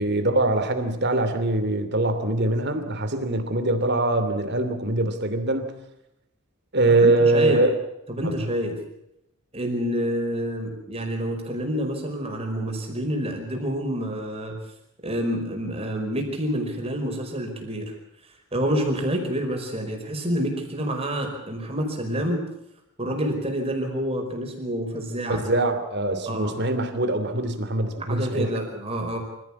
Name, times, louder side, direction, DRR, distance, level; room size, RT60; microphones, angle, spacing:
voice 1, 0.0-5.7 6.7-7.7 8.2-8.3 25.4-28.6, right 2 dB, 50° right, 9 dB, 2.8 m, -23 dB
voice 2, 7.0-7.7 8.1-8.8 9.5-14.6 15.0-17.9 18.5-22.5 23.0-25.5 26.3-26.5 28.0-29.2, equal, 25° right, 2 dB, 5.0 m, -28 dB
26.0 x 16.0 x 8.6 m, 0.84 s
head